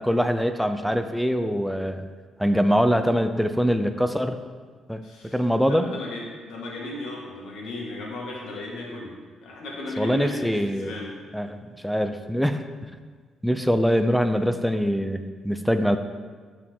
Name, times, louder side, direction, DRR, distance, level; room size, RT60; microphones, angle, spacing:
voice 1, 0.0-2.0 2.4-4.4 4.9-5.9 10.0-10.9 11.3-12.9 13.4-16.0, equal, ahead, 8 dB, 0.5 m, -23 dB
voice 2, 5.0-5.4 5.6-9.1 9.4-11.1, left 1 dB, 85° left, -3 dB, 2.1 m, -35 dB
12.5 x 4.9 x 3.7 m, 1.5 s
cardioid pair, 90°, 0 cm